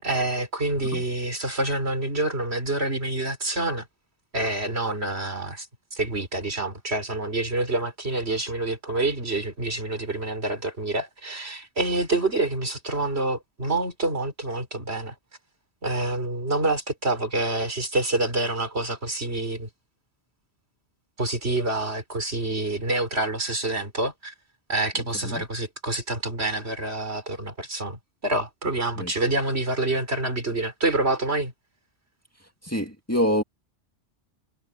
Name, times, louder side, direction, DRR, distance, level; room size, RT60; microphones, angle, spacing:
voice 1, 0.0-3.9 4.3-5.7 5.9-15.1 15.8-19.7 21.2-24.3 24.7-31.5, right 2 dB, 70° right, 4.3 m, -27 dB
voice 2, 25.0-25.4 29.0-29.1 32.4-33.4, equal, 15° left, 2.2 m, -27 dB
omnidirectional pair, 1.1 m